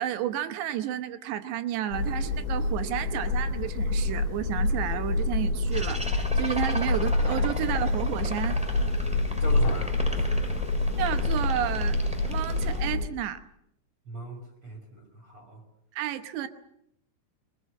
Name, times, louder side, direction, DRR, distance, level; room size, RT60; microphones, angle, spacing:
voice 1, 0.0-8.6 11.0-12.0 12.3-13.4 15.9-16.5, right 11 dB, 75° right, 9 dB, 2.9 m, -31 dB
sound 1, 1.9-13.1, left 2 dB, 70° left, 4.2 m, -27 dB
sound 2, 5.7-12.8, right 1 dB, 5° right, 1.4 m, -36 dB
voice 2, 9.4-10.3 14.1-15.6, right 2 dB, 35° right, 3 dB, 2.8 m, -40 dB
23.5 x 21.0 x 7.6 m, 0.77 s
omnidirectional pair, 5.7 m